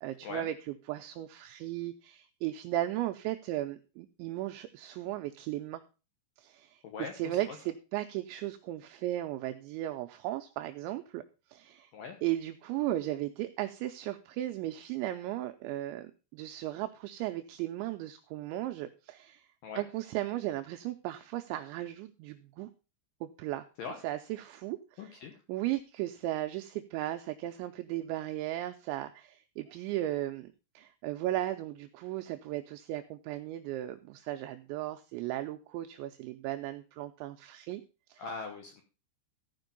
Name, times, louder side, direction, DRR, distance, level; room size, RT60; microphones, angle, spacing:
voice 1, 0.0-5.8 6.4-11.2 11.5-11.9 12.2-19.5 19.8-22.7 23.2-23.7 24.0-25.2 25.5-37.8 38.1-38.2, right 14 dB, 80° right, 7 dB, 2.7 m, -36 dB
voice 2, 6.8-7.6 11.9-12.2 19.6-19.8 23.8-24.0 25.0-25.4 38.2-38.8, left 4 dB, 75° left, 3 dB, 2.0 m, -41 dB
14.5 x 5.2 x 5.2 m, 0.33 s
omnidirectional pair, 5.6 m